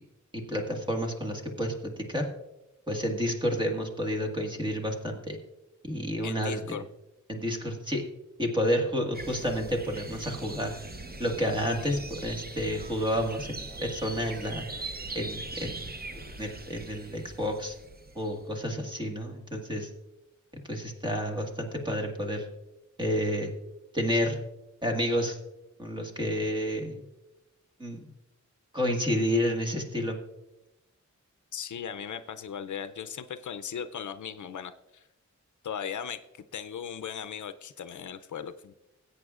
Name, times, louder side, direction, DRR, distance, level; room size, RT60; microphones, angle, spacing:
voice 1, 0.3-2.3 2.9-5.4 5.8-6.8 7.3-8.0 8.4-10.7 11.2-14.7 15.1-15.9 16.4-17.7 18.1-19.9 20.7-22.4 23.0-23.5 23.9-24.4 24.8-25.4 25.8-27.0 27.8-28.0 28.7-30.2, equal, 15° right, 2 dB, 1.6 m, -30 dB
voice 2, 6.2-6.9 31.5-35.1 35.6-38.7, left 8 dB, 75° left, 10 dB, 0.5 m, -38 dB
sound 1, 9.1-18.5, right 2 dB, 30° right, 0.8 m, -41 dB
20.0 x 8.5 x 2.4 m, 0.95 s
wide cardioid pair, 120°, 30 cm